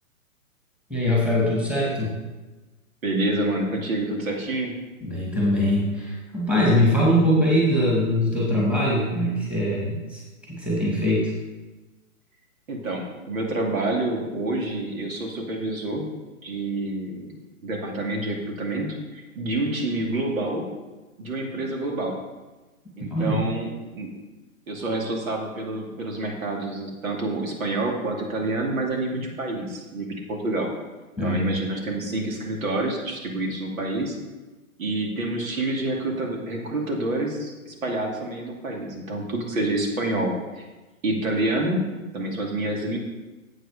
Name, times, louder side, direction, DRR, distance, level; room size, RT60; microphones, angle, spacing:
voice 1, 0.9-2.1 5.0-10.2 10.5-11.3 23.1-23.4 31.2-31.5, left 1 dB, 5° right, -6 dB, 2.1 m, -22 dB
voice 2, 3.0-4.7 12.7-16.1 16.4-20.7 21.2-22.2 23.0-24.1 24.7-30.7 31.2-34.2 34.8-40.6 41.0-41.8 42.1-43.0, right 2 dB, 70° right, 1 dB, 2.6 m, -28 dB
8.0 x 7.7 x 4.9 m, 1.2 s
hypercardioid pair, 135°, 42 cm